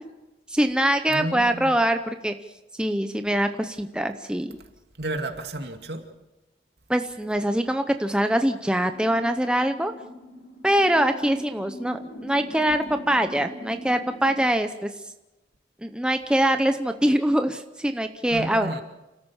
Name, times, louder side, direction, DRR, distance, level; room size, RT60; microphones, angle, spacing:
voice 1, 0.5-2.3 2.8-4.5 6.9-9.9 10.6-14.9 15.8-18.8, right 1 dB, 5° right, 7 dB, 0.8 m, -23 dB
voice 2, 1.1-1.7 5.0-6.0 18.3-18.8, right 2 dB, 65° right, 5 dB, 2.4 m, -32 dB
sound 1, 8.8-14.5, left 1 dB, 85° left, 6.6 m, -42 dB
29.5 x 13.5 x 7.2 m, 1.0 s
head